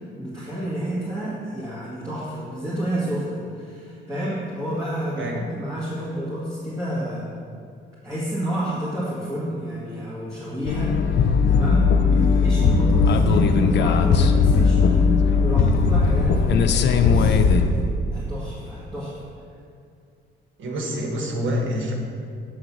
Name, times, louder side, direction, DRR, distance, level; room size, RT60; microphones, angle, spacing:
voice 1, 0.2-7.3 8.0-19.1, right 1 dB, 15° right, -9 dB, 2.0 m, -30 dB
sound 1, 10.6-17.7, left 5 dB, 60° left, 0.5 m, -18 dB
voice 2, 20.6-21.9, equal, 80° right, 0 dB, 1.4 m, -27 dB
8.6 x 3.8 x 6.2 m, 2.3 s
cardioid pair, 90°, 20 cm